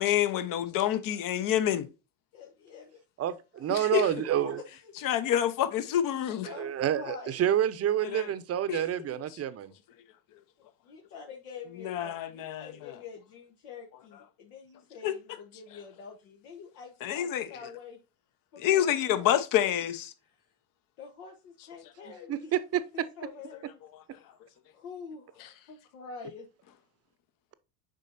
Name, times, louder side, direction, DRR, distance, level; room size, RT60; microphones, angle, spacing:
voice 1, 0.0-1.9 3.7-4.1 5.0-6.5 8.0-8.3 8.7-8.8 11.7-13.0 14.1-14.2 15.0-15.4 15.7-15.8 17.0-17.7 18.6-20.1 23.9-24.3 25.4-25.5, left 11 dB, 50° left, 1.0 m, -28 dB
voice 2, 2.3-3.0 3.6-3.7 4.2-5.2 6.5-7.3 10.8-18.0 18.5-18.8 19.1-19.2 21.0-22.5 22.9-23.8 24.7-26.5, left 5 dB, 80° left, 1.3 m, -46 dB
voice 3, 3.2-4.6 6.5-9.7 22.1-23.1, right 11 dB, 35° right, 0.7 m, -29 dB
7.4 x 5.0 x 2.6 m
supercardioid pair, 95°, 42 cm